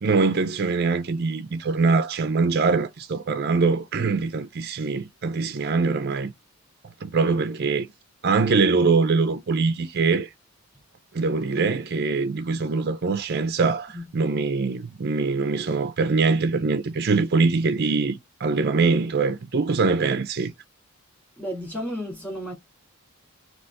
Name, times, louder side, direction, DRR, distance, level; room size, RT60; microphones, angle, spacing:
voice 1, 0.0-6.3 7.0-7.9 8.2-10.3 11.1-20.5, right 4 dB, 45° right, 0.5 m, -23 dB
voice 2, 21.4-22.5, equal, 10° left, 1.9 m, -32 dB
4.1 x 2.9 x 3.3 m
head